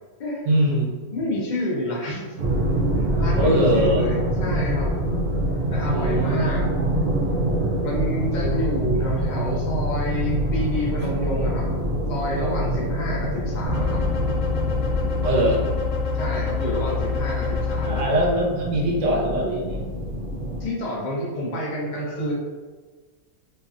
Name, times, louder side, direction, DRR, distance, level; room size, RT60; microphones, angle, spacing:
voice 1, 0.5-0.9 2.9-3.1 3.4-4.1 5.9-6.4 8.4-8.5 15.2-15.6 17.8-19.9, right 1 dB, 60° right, -2 dB, 0.9 m, -22 dB
voice 2, 1.1-2.4 3.0-4.9 5.7-6.7 7.8-11.7 12.1-14.0 16.1-18.1 20.6-22.3, left 1 dB, 50° left, -4 dB, 0.5 m, -29 dB
sound 1, 2.4-20.7, right 1 dB, 80° right, 0.4 m, -25 dB
sound 2, 13.7-18.0, left 4 dB, 70° left, 1.0 m, -26 dB
3.2 x 2.8 x 2.4 m, 1.4 s
omnidirectional pair, 1.7 m